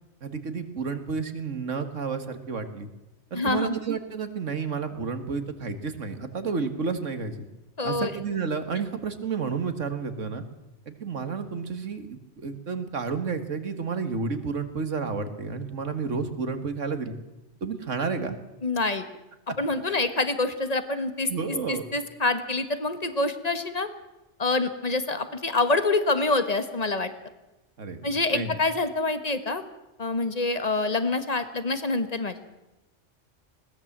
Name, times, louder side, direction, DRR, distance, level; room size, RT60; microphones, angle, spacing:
voice 1, 0.2-2.9 3.3-7.5 7.8-10.4 10.9-17.2 17.6-18.4 19.9-20.0 21.3-21.8 27.8-28.6, right 5 dB, 80° right, 9 dB, 2.1 m, -31 dB
voice 2, 3.3-3.7 7.8-8.1 18.6-19.0 19.6-21.3 21.7-23.9 24.4-27.1 28.0-29.6 30.0-32.3, left 3 dB, 30° left, 10 dB, 1.6 m, -26 dB
20.5 x 17.5 x 7.4 m, 1.0 s
omnidirectional pair, 1.3 m